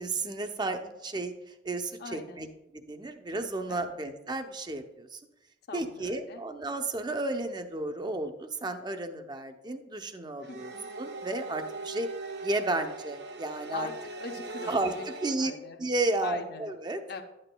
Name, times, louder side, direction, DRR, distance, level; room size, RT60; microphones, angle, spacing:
voice 1, 0.0-1.3 1.6-2.5 2.7-5.2 5.7-12.1 12.4-13.9 14.7-14.9 15.2-15.5 15.8-17.0, right 2 dB, 25° right, 7 dB, 0.6 m, -32 dB
voice 2, 2.0-2.4 3.7-4.0 5.7-6.4 10.5-10.9 13.7-15.0 15.3-15.8 16.2-16.7 17.1-17.2, left 3 dB, 60° left, 5 dB, 0.7 m, -41 dB
sound 1, 10.4-15.3, right 3 dB, 65° right, 0.7 m, -40 dB
12.0 x 8.7 x 2.2 m, 0.94 s
head